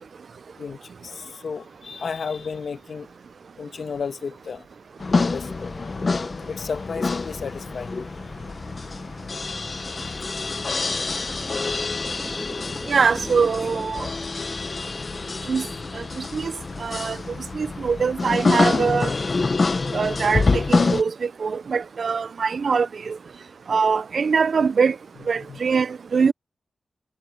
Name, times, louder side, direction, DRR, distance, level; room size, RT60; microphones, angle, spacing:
voice 1, 0.6-3.1 3.6-4.7 5.3-5.7 6.4-7.9 10.0-10.3 25.4-25.6, left 5 dB, 70° left, 1.8 m, -33 dB
sound 1, 5.0-21.0, left 3 dB, 45° left, 0.9 m, -26 dB
sound 2, 7.9-13.9, right 1 dB, 15° right, 3.4 m, -41 dB
voice 2, 12.9-14.1 15.5-15.6 16.0-16.5 16.8-17.2 17.5-19.1 19.9-23.2 23.7-25.0 25.3-26.3, right 5 dB, 65° right, 0.5 m, -23 dB
cardioid pair, 75°, 0 cm